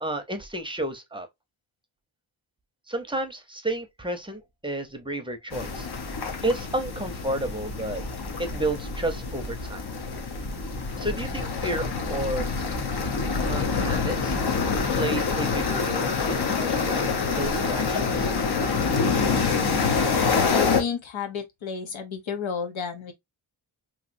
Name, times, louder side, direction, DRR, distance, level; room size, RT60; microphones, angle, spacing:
voice 1, 0.0-1.3 2.9-5.9 6.4-8.0 8.4-9.8 11.0-12.5 13.5-14.4 15.0-18.3, right 1 dB, 10° right, 0.6 m, -31 dB
sound 1, 5.5-20.8, left 4 dB, 55° left, 0.9 m, -26 dB
voice 2, 20.5-23.1, left 6 dB, 80° left, 1.0 m, -31 dB
3.1 x 2.8 x 2.5 m
wide cardioid pair, 95°, 46 cm